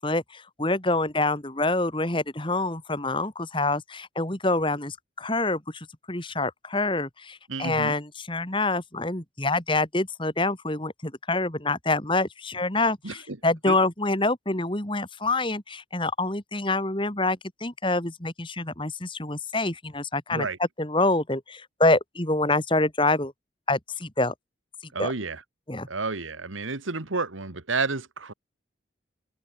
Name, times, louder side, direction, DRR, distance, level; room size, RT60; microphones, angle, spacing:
voice 1, 0.0-23.3 23.7-24.3 25.0-25.1 25.7-25.9, left 2 dB, 25° left, 2.4 m, -26 dB
voice 2, 7.5-7.9 13.0-13.4 13.7-13.8 20.3-20.6 24.9-25.4 25.9-28.3, right 3 dB, 90° right, 1.9 m, -30 dB
open air
head